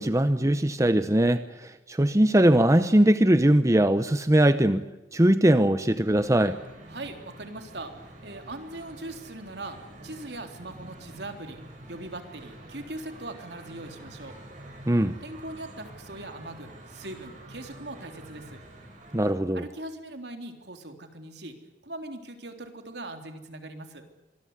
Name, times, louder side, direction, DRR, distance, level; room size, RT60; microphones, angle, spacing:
voice 1, 0.0-4.8 5.1-6.6 14.9-15.1 19.1-19.6, right 1 dB, 20° right, 11 dB, 0.9 m, -21 dB
sound 1, 6.0-19.3, right 1 dB, 45° right, 7.7 m, -47 dB
voice 2, 6.9-11.6 11.9-14.4 15.2-18.6 19.5-21.6 21.8-24.0, right 2 dB, 65° right, 6 dB, 3.6 m, -40 dB
25.5 x 22.0 x 8.2 m, 1.0 s
head